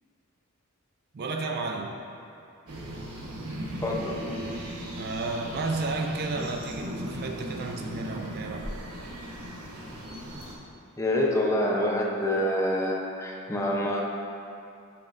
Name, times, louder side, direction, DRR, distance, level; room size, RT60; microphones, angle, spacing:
voice 1, 1.1-2.0 4.9-8.7, right 3 dB, 45° right, 3 dB, 0.4 m, -32 dB
sound 1, 2.7-10.6, equal, 90° right, 1.0 m, -37 dB
voice 2, 3.8-4.2 11.0-14.0, left 1 dB, 15° left, -2 dB, 0.6 m, -26 dB
8.4 x 5.9 x 2.5 m, 2.6 s
head